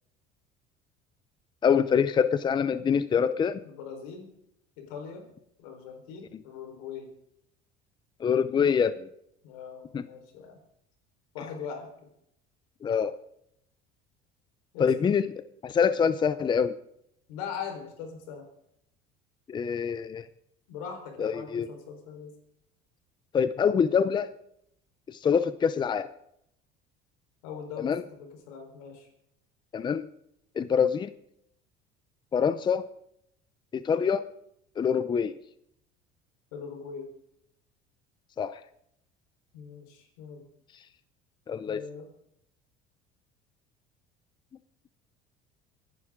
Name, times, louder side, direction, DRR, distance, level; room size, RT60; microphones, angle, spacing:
voice 1, 1.6-3.6 8.2-9.0 9.9-10.0 12.8-13.2 14.8-15.2 15.6-16.7 19.5-20.2 21.2-21.7 23.3-24.3 25.1-26.1 27.8-28.0 29.7-30.1 30.6-31.1 32.3-32.9 33.7-34.2 34.8-35.3 38.4-38.6 41.5-41.8, left 7 dB, 25° left, 14 dB, 0.6 m, -25 dB
voice 2, 3.6-4.3 4.8-5.3 5.6-7.1 9.4-10.6 11.3-11.9 14.7-15.2 17.3-18.5 20.7-22.3 27.4-29.1 36.5-37.1 39.5-40.4 41.7-42.1, left 6 dB, 90° left, 4 dB, 4.4 m, -41 dB
25.5 x 11.5 x 3.8 m, 0.75 s
cardioid pair, 120°, 18 cm